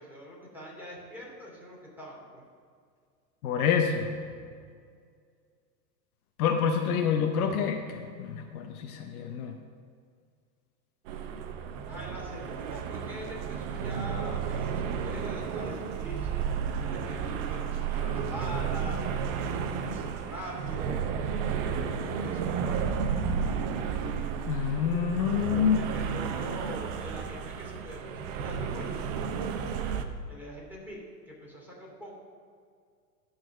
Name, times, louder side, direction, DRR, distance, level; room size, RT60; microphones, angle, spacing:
voice 1, 0.0-2.4 4.2-4.6 11.9-16.3 16.8-19.0 19.3-21.0 21.6-22.8 25.4-29.1 30.3-31.0 31.3-32.2, equal, 5° right, -4 dB, 2.7 m, -43 dB
voice 2, 3.4-4.1 6.4-9.6 24.5-25.8, left 7 dB, 60° left, 5 dB, 1.0 m, -27 dB
sound 1, 11.1-30.1, right 6 dB, 50° right, 0.9 m, -32 dB
12.0 x 4.3 x 6.4 m, 2.1 s
hypercardioid pair, 115°, 50 cm